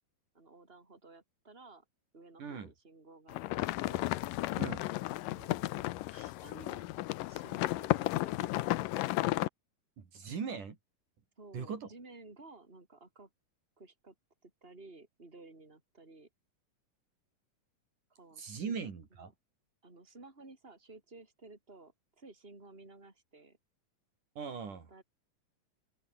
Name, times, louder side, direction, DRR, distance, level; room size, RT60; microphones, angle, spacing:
voice 1, 0.3-1.9 2.1-4.1 5.2-6.9 7.3-8.9 11.4-13.3 13.8-14.2 14.4-16.3 18.1-18.8 19.2-19.3 19.8-23.6 24.5-25.0, right 3 dB, 15° right, 5.2 m, -55 dB
voice 2, 2.4-2.7 4.6-4.9 10.0-10.8 11.5-11.9 18.4-19.3 24.4-24.9, right 6 dB, 65° right, 5.1 m, -40 dB
sound 1, 3.3-9.5, left 18 dB, 80° left, 2.3 m, -33 dB
open air
omnidirectional pair, 4.0 m